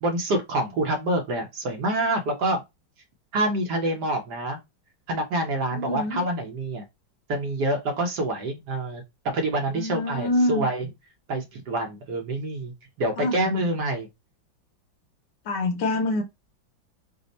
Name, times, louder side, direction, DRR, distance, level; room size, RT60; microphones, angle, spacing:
voice 1, 0.0-2.6 3.3-4.6 5.1-6.8 7.3-9.0 9.3-10.9 11.3-12.7 13.0-14.1, right 1 dB, 65° right, 1.2 m, -26 dB
voice 2, 5.7-6.2 9.7-10.7 13.2-13.5 15.5-16.2, left 1 dB, 65° left, 1.3 m, -26 dB
3.4 x 2.0 x 3.9 m
omnidirectional pair, 2.2 m